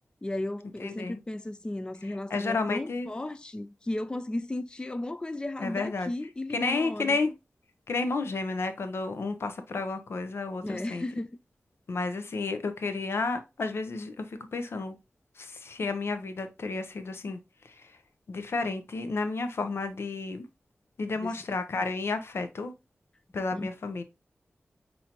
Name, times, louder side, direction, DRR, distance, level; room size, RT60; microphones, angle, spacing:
voice 1, 0.2-7.2 10.6-11.3 21.2-21.3 23.5-23.7, left 1 dB, 20° left, 0.4 m, -35 dB
voice 2, 0.8-1.2 2.0-3.1 5.6-6.1 6.5-7.3 7.9-11.0 11.9-15.0 15.4-17.4 17.6-17.9 18.3-20.4 21.0-22.7 23.3-24.0, left 3 dB, 80° left, 0.6 m, -31 dB
5.6 x 2.7 x 2.9 m
wide cardioid pair, 60°, 4 cm